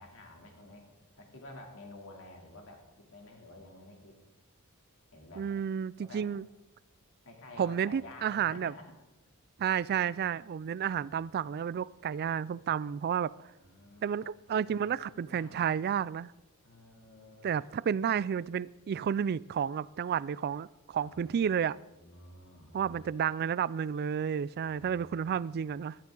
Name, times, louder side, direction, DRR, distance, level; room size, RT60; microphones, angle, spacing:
voice 1, 0.0-4.2 5.1-5.5 6.0-6.3 7.2-9.0 10.8-11.2 13.6-15.7 16.6-17.5 21.0-21.5 22.0-23.0 24.6-25.7, left 1 dB, 65° left, 2.9 m, -52 dB
voice 2, 5.4-6.5 7.6-8.7 9.6-13.3 14.0-16.3 17.4-21.8 22.7-26.0, right 8 dB, 45° right, 0.3 m, -31 dB
16.0 x 12.0 x 3.8 m
head